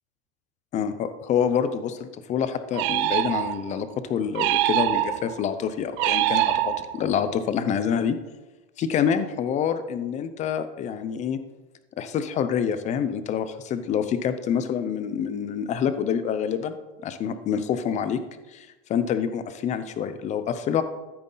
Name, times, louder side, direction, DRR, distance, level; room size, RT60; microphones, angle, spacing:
voice 1, 0.7-8.2 8.8-11.4 12.0-16.7 17.0-18.2 18.5-20.8, left 8 dB, 20° left, 11 dB, 0.6 m, -27 dB
sound 1, 2.7-3.8 4.3-5.4 6.0-7.2, right 15 dB, 50° right, 0.5 m, -24 dB
14.0 x 7.8 x 3.9 m, 1.1 s
supercardioid pair, 155°, 31 cm